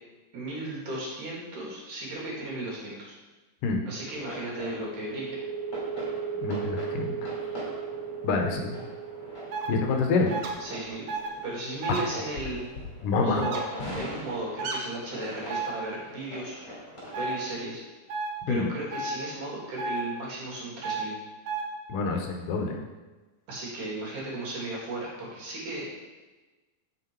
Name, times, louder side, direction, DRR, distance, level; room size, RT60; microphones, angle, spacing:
voice 1, 0.3-3.1 3.9-5.4 10.6-11.1 11.4-12.7 13.2-13.6 13.9-16.7 17.2-17.8 18.5-21.2 23.5-25.9, right 2 dB, 65° right, -5 dB, 3.7 m, -35 dB
sound 1, 4.1-17.5, equal, 30° left, 3.0 m, -42 dB
sound 2, 5.0-12.2, right 6 dB, 5° left, 1.0 m, -36 dB
voice 2, 6.4-7.1 8.2-8.8 9.7-10.3 13.0-13.5 18.5-18.7 21.9-22.8, left 4 dB, 80° left, 3 dB, 2.5 m, -26 dB
sound 3, 9.5-9.7 10.3-10.5 11.1-11.3 11.8-12.0 13.4-13.6 14.6-14.8 15.5-15.7 17.1-17.3 18.1-18.3 18.9-19.1 19.8-20.0 20.8-21.0 21.5-21.6, right 4 dB, 90° right, 1.2 m, -31 dB
7.8 x 6.2 x 4.5 m, 1.2 s
omnidirectional pair, 3.8 m